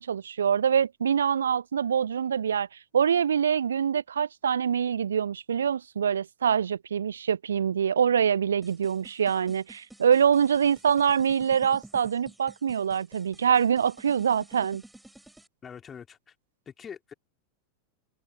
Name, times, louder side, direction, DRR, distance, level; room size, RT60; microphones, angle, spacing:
voice 1, 0.0-2.7 2.9-14.8, right 7 dB, 70° right, 0.3 m, -25 dB
sound 1, 8.6-15.5, right 1 dB, 5° right, 3.8 m, -51 dB
voice 2, 15.6-16.3 16.7-17.1, left 7 dB, 20° left, 3.2 m, -44 dB
figure-of-eight pair, 90°, 0 cm